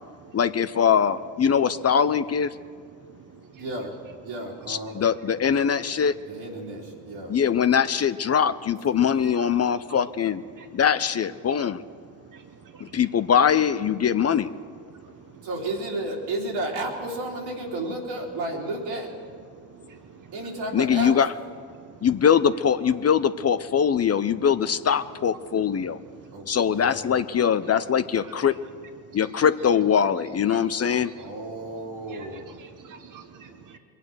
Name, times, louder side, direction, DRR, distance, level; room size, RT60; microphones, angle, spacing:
voice 1, 0.3-2.5 4.7-6.1 7.3-10.4 10.7-11.8 12.8-14.5 20.7-21.3 22.0-26.0 26.5-28.5 29.1-31.1, left 7 dB, 35° left, 13 dB, 0.6 m, -22 dB
voice 2, 3.6-3.9 4.2-5.0 6.2-7.3 15.4-19.1 20.3-21.2 26.3-27.0 31.2-32.5, right 2 dB, 75° right, -1 dB, 3.4 m, -32 dB
voice 3, 9.2-9.6 9.9-10.0 10.6-10.7 12.3-12.4 12.7-12.8 22.5-22.6 27.4-27.5 28.2-28.6 29.1-31.1 32.1-33.8, right 6 dB, 45° right, 6 dB, 1.2 m, -47 dB
23.0 x 9.1 x 6.3 m, 2.4 s
hypercardioid pair, 55°, 46 cm